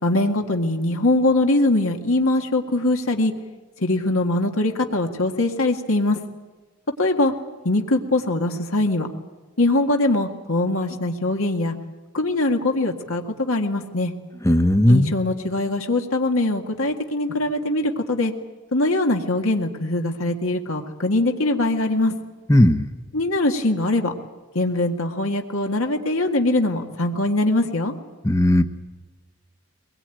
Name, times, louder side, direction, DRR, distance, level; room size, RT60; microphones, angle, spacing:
voice 1, 0.0-3.3 3.8-6.2 7.0-7.3 7.7-9.1 9.6-11.7 12.1-14.1 14.9-18.3 18.7-22.2 23.1-24.1 24.6-27.9, left 2 dB, 70° left, 3 dB, 1.9 m, -22 dB
voice 2, 14.5-15.1 22.5-22.9 28.2-28.6, left 1 dB, 15° left, 7 dB, 0.9 m, -16 dB
23.0 x 21.0 x 9.2 m, 1.3 s
head